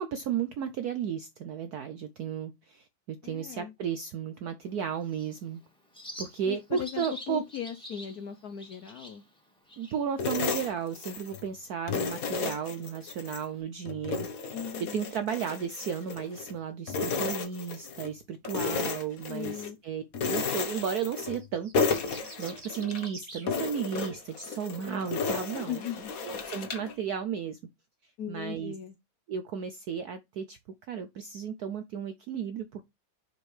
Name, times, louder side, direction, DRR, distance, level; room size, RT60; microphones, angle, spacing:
voice 1, 0.0-5.6 6.2-7.4 9.8-14.6 14.9-25.8 26.2-27.6 28.3-28.7 29.3-30.6 30.9-32.8, right 7 dB, 75° right, 0.9 m, -34 dB
voice 2, 3.2-3.7 6.4-9.2 14.5-15.1 19.3-19.8 25.7-26.1 28.2-28.9, left 9 dB, 65° left, 0.9 m, -38 dB
Bird, 4.6-13.6, equal, 5° left, 1.6 m, -50 dB
sound 1, 10.2-11.5 11.9-13.4 13.8-16.5 16.9-18.1 18.4-19.7 20.1-21.5 21.7-23.1 23.5-26.9, left 4 dB, 50° left, 1.2 m, -33 dB
sound 2, 21.4-23.5, right 3 dB, 40° right, 0.4 m, -47 dB
6.2 x 5.2 x 3.3 m
omnidirectional pair, 2.3 m